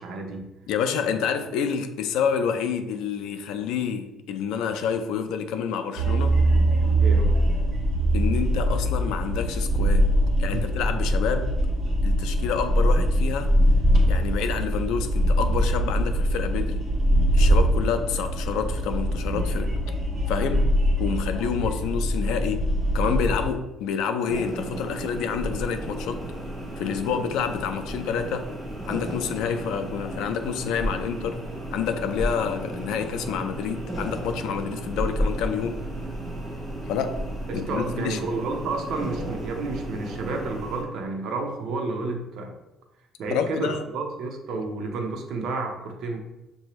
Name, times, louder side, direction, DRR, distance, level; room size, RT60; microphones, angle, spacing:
voice 1, 0.0-0.5 7.0-7.4 10.5-10.6 27.1-27.2 37.5-42.6 43.2-46.2, right 3 dB, 60° right, 0.7 m, -31 dB
voice 2, 0.7-6.4 8.1-11.5 12.0-13.5 14.1-16.9 17.3-19.8 20.3-20.7 21.0-26.2 26.8-28.5 28.8-31.4 31.7-35.8 36.9-37.2 37.5-38.2 43.3-43.8, left 7 dB, 90° left, 0.4 m, -28 dB
sound 1, 6.0-23.5, equal, 30° right, 1.2 m, -22 dB
sound 2, 24.3-40.8, right 1 dB, ahead, 1.1 m, -33 dB
6.6 x 2.7 x 3.0 m
cardioid pair, 165°, 0 cm